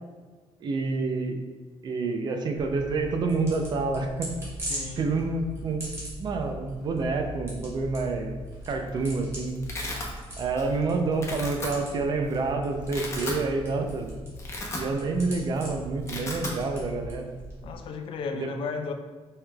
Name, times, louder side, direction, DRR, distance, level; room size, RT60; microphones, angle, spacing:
voice 1, 0.6-1.4 1.8-4.3 5.0-5.9 6.2-8.4 8.7-9.5 10.4-14.1 14.8-17.3 18.3-18.5, right 3 dB, 45° right, 5 dB, 0.4 m, -28 dB
sound 1, 2.6-17.8, right 1 dB, 25° right, 1.3 m, -40 dB
voice 2, 4.7-5.1 17.6-18.9, left 5 dB, 55° left, 6 dB, 0.4 m, -34 dB
Domestic sounds home sounds, 8.6-9.0 9.2-10.1 10.6-10.8 11.1-11.7 12.3-12.4 12.8-13.4 13.8-14.0 14.3-15.2 15.5-15.6 15.9-16.6, left 2 dB, 25° left, 0.7 m, -35 dB
5.4 x 3.2 x 2.3 m, 1.4 s
cardioid pair, 150°, 11 cm